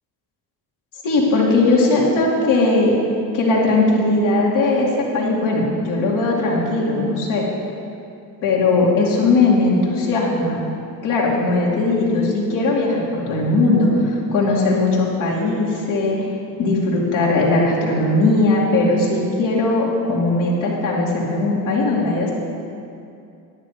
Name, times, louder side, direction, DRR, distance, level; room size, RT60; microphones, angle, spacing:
voice 1, 1.0-2.9 3.3-7.4 8.4-10.6 11.0-16.2 16.6-22.3, left 2 dB, 85° left, -5 dB, 2.9 m, -18 dB
10.5 x 10.0 x 5.0 m, 2.5 s
supercardioid pair, 65°, 45 cm